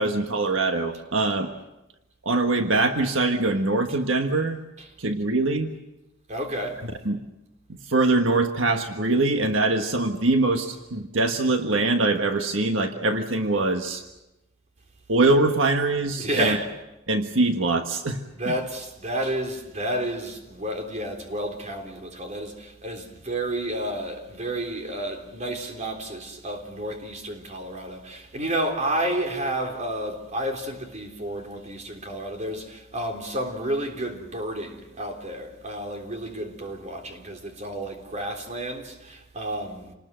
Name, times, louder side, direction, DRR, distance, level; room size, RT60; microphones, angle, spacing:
voice 1, 0.0-1.5 2.2-4.6 5.0-5.7 6.8-7.2 7.9-14.0 15.1-16.6 17.1-18.2 18.5-18.6, right 2 dB, 80° right, 1.5 m, -23 dB
voice 2, 6.3-6.8 16.2-16.7 18.4-39.9, right 1 dB, 40° right, 3.7 m, -31 dB
28.0 x 20.0 x 7.7 m
head